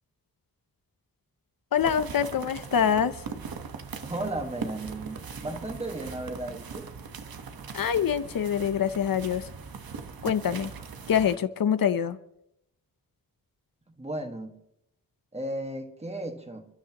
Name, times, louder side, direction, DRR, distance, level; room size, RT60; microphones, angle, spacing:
voice 1, 1.7-3.2 7.7-9.5 10.2-10.7 11.1-12.2, left 8 dB, 75° left, 0.8 m, -25 dB
sound 1, 1.8-11.4, right 5 dB, 85° right, 1.3 m, -40 dB
voice 2, 4.0-6.9 14.0-14.6 15.3-16.7, right 1 dB, 20° right, 1.6 m, -35 dB
28.0 x 13.0 x 3.0 m
wide cardioid pair, 175°, 35 cm